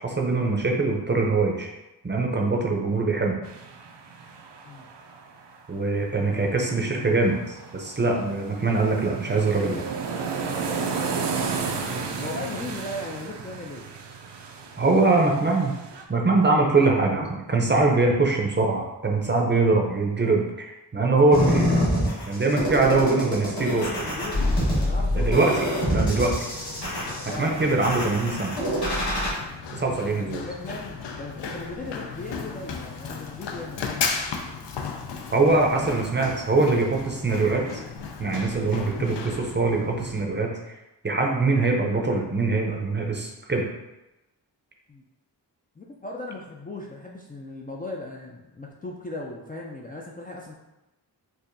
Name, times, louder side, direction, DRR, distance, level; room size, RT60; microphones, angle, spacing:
voice 1, 0.0-1.7 2.0-3.4 5.7-9.9 14.8-15.8 16.1-21.8 22.3-23.8 25.1-26.4 27.4-28.5 29.7-30.4 35.3-37.7 38.2-40.5 41.0-43.7, right 3 dB, 25° right, 0 dB, 0.5 m, -23 dB
sound 1, 3.4-6.0 6.3-16.0, right 5 dB, 75° right, 0.5 m, -33 dB
voice 2, 11.6-13.9 15.0-15.4 23.1-26.0 27.2-27.6 30.2-33.9 44.9-45.0 45.8-50.5, left 2 dB, 25° left, -3 dB, 0.3 m, -37 dB
sound 2, 21.3-29.3, equal, 60° left, 1.3 m, -26 dB
Run, 24.2-40.2, left 5 dB, 80° left, 0.5 m, -36 dB
4.6 x 2.5 x 2.6 m, 0.98 s
wide cardioid pair, 115°, 42 cm